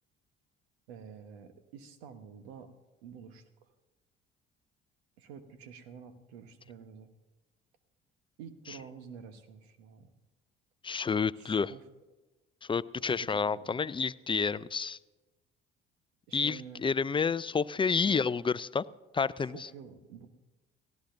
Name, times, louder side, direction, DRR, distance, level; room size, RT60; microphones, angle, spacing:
voice 1, 0.9-2.7 3.0-3.4 5.2-7.1 8.4-10.1 11.4-11.8 13.1-13.8 16.3-16.9 18.0-18.2 19.4-20.3, right 7 dB, 75° right, 10 dB, 1.3 m, -49 dB
voice 2, 10.8-11.7 12.6-15.0 16.3-18.8 19.1-19.7, left 5 dB, 15° left, 18 dB, 0.4 m, -29 dB
30.0 x 16.0 x 2.7 m, 1.2 s
figure-of-eight pair, 50°, 32 cm